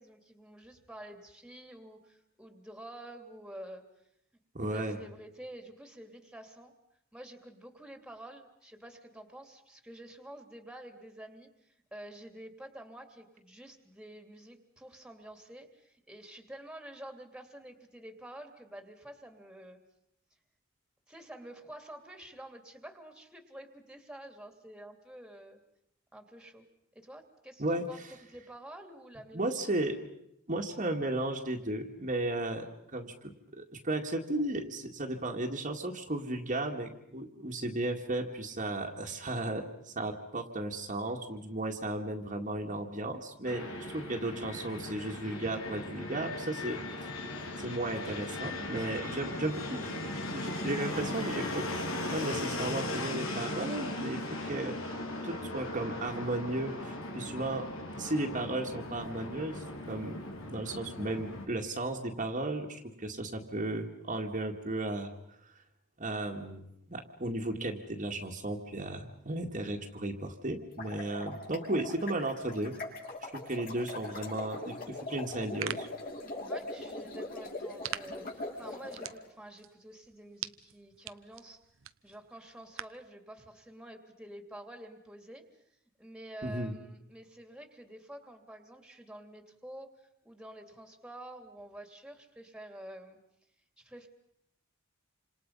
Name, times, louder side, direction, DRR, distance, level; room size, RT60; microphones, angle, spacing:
voice 1, 0.0-3.8 4.6-6.7 7.1-19.8 21.1-25.6 26.1-26.7 26.9-29.7 44.1-44.4 76.5-81.6 82.0-85.4 86.0-93.2 93.8-94.1, right 1 dB, 5° right, 6 dB, 2.7 m, -49 dB
voice 2, 4.5-5.0 27.6-28.1 29.3-30.0 30.5-32.7 32.9-43.7 43.9-47.3 47.6-49.9 50.3-51.6 52.1-54.8 55.2-57.7 58.0-60.2 60.5-65.4 66.0-72.7 73.2-75.9 86.4-86.7, right 1 dB, 40° right, 2 dB, 2.0 m, -35 dB
Fixed-wing aircraft airplane, 43.4-61.5, left 2 dB, 75° left, 3.7 m, -38 dB
sound 1, 70.6-79.1, left 2 dB, 45° left, 5.6 m, -41 dB
sound 2, 75.3-83.1, right 10 dB, 70° right, 0.8 m, -45 dB
28.5 x 26.5 x 5.5 m, 0.79 s
head